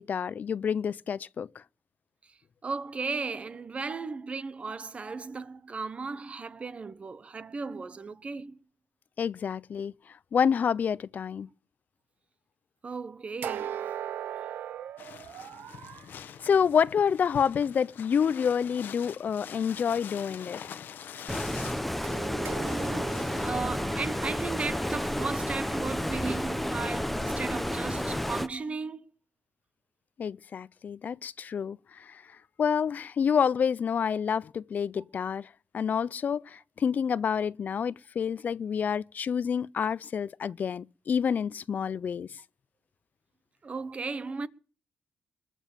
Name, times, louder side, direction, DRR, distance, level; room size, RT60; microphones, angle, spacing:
voice 1, 0.0-1.6 9.2-9.9 10.3-11.5 16.4-20.7 30.2-42.4, left 7 dB, 55° left, 0.6 m, -28 dB
voice 2, 2.6-8.6 12.8-13.8 22.5-29.1 43.6-44.5, right 4 dB, 35° right, 1.1 m, -36 dB
sound 1, 13.4-16.1 22.0-26.1, right 10 dB, 80° right, 0.6 m, -40 dB
sound 2, 15.0-23.6, left 8 dB, 70° left, 1.2 m, -45 dB
Stream, 21.3-28.5, left 1 dB, 5° left, 1.0 m, -31 dB
21.5 x 7.2 x 7.3 m
cardioid pair, 90°, 3 cm